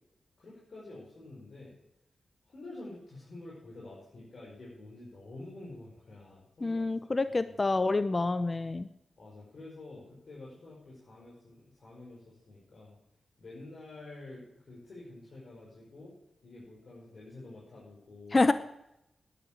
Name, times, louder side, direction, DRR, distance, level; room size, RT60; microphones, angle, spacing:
voice 1, 0.4-1.8 2.4-6.9 7.7-7.8 9.2-13.0 13.4-16.1 16.4-18.5, left 2 dB, 60° left, -6 dB, 5.7 m, -48 dB
voice 2, 6.6-8.9 18.3-18.5, left 3 dB, 35° left, 12 dB, 0.7 m, -27 dB
11.0 x 10.5 x 7.7 m, 0.84 s
cardioid pair, 55°, 0 cm